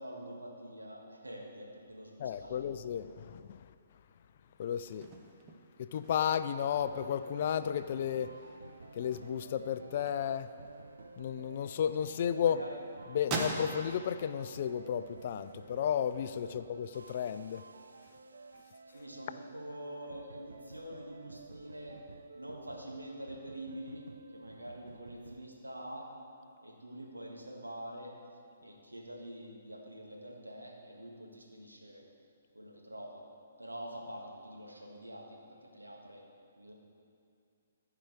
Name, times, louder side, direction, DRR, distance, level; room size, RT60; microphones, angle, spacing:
voice 1, 0.0-2.7 12.0-12.8 16.4-16.5 18.9-22.0 22.3-24.0 24.3-26.1 26.6-28.1 28.6-32.0 32.5-33.2 33.6-36.2 36.6-36.7, right 1 dB, 90° right, -1 dB, 1.6 m, -46 dB
voice 2, 2.2-3.7 4.6-5.1 5.8-8.4 8.9-10.5 11.2-12.6 13.1-17.6, left 9 dB, 45° left, 12 dB, 0.3 m, -33 dB
sound 1, 2.6-12.0 12.4-14.9 15.2-16.7, right 3 dB, 25° right, 0.9 m, -44 dB
sound 2, 6.5-25.4, right 3 dB, 70° right, 0.4 m, -52 dB
14.5 x 4.9 x 4.5 m, 2.5 s
figure-of-eight pair, 130°, 0 cm